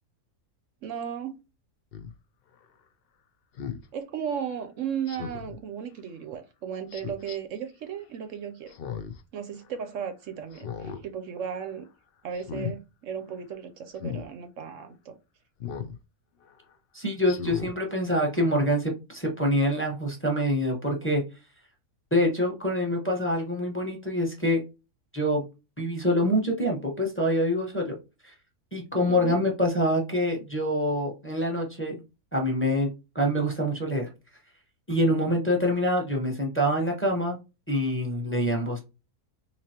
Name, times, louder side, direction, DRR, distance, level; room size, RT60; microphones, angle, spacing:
voice 1, 0.8-1.4 3.9-8.7 9.3-11.9 12.2-15.2 29.1-29.4, right 8 dB, 65° right, 0.8 m, -35 dB
Speech synthesizer, 1.9-2.1 3.6-3.8 5.1-5.6 6.9-7.4 8.7-9.2 9.6-9.7 10.5-11.0 11.4-11.7 12.3-12.8 14.0-14.3 15.6-16.0 16.4-16.5 17.2-17.7 18.2-18.3, left 7 dB, 90° left, 0.5 m, -36 dB
voice 2, 16.9-21.2 22.1-24.6 25.1-25.5 25.8-28.0 28.2-28.3 28.7-32.0 32.3-34.1 34.9-37.4 37.7-38.8, equal, 10° left, 0.8 m, -25 dB
4.1 x 2.9 x 2.8 m
omnidirectional pair, 1.7 m